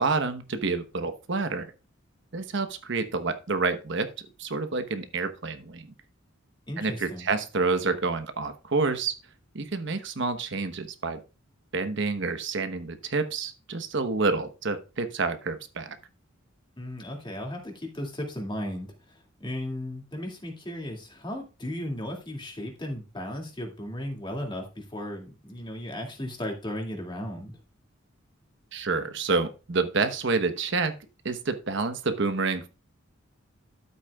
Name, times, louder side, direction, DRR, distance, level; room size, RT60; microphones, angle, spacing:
voice 1, 0.0-1.7 2.3-4.1 4.4-5.9 6.8-9.1 9.5-11.2 11.7-16.0 28.7-30.9 31.2-32.7, right 3 dB, 65° right, 10 dB, 1.0 m, -28 dB
voice 2, 6.7-7.3 16.8-27.6, left 1 dB, 25° left, 1 dB, 2.3 m, -36 dB
12.0 x 8.2 x 2.3 m, 0.31 s
head